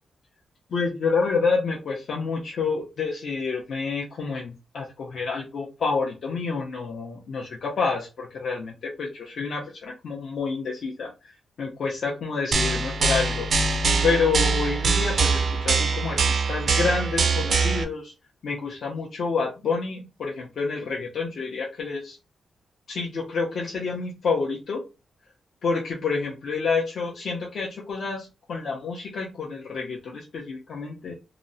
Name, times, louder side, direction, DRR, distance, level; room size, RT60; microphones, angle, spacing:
voice 1, 0.7-11.1 11.6-13.5 14.0-18.1 18.4-22.2 22.9-24.8 25.6-31.1, left 4 dB, 55° left, -3 dB, 0.5 m, -28 dB
sound 1, 12.5-17.8, right 4 dB, 45° right, 0.4 m, -23 dB
2.8 x 2.0 x 2.6 m, 0.29 s
wide cardioid pair, 145°, 0 cm